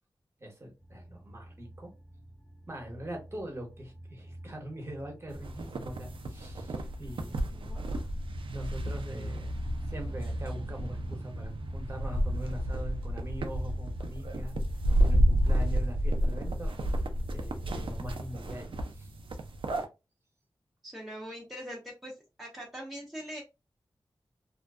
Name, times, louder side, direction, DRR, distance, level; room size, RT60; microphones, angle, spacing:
voice 1, 0.4-1.9 2.7-7.5 8.5-9.6 9.9-14.6 15.0-17.0 17.3-19.1, equal, 30° right, 2 dB, 1.0 m, -42 dB
sound 1, 0.8-18.5, right 1 dB, 30° left, 0.8 m, -47 dB
sound 2, 5.3-19.9, equal, 90° right, 0.4 m, -31 dB
voice 2, 7.4-7.9 20.8-22.1 22.4-23.4, equal, ahead, -4 dB, 0.7 m, -42 dB
2.5 x 2.1 x 2.3 m, 0.26 s
wide cardioid pair, 75°, 9 cm